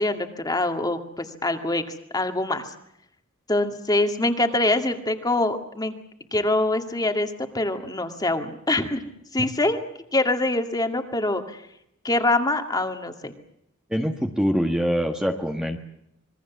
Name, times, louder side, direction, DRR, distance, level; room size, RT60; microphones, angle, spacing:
voice 1, 0.0-1.8 2.1-2.7 3.5-5.9 6.3-9.0 9.3-9.8 10.1-11.6 12.0-13.3, left 2 dB, 20° left, 6 dB, 2.2 m, -24 dB
voice 2, 13.9-15.8, equal, 5° right, 3 dB, 1.6 m, -24 dB
26.5 x 22.0 x 7.3 m, 0.77 s
head